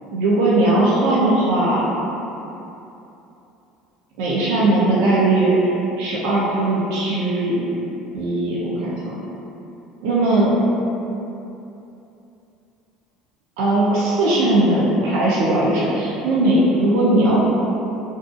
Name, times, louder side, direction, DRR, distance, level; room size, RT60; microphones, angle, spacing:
voice 1, 0.1-1.8 4.2-5.7 6.0-7.6 8.1-9.1 10.0-10.5 13.6-17.4, right 2 dB, 85° right, -6 dB, 0.4 m, -18 dB
2.6 x 2.3 x 2.4 m, 2.9 s
cardioid pair, 130°, 0 cm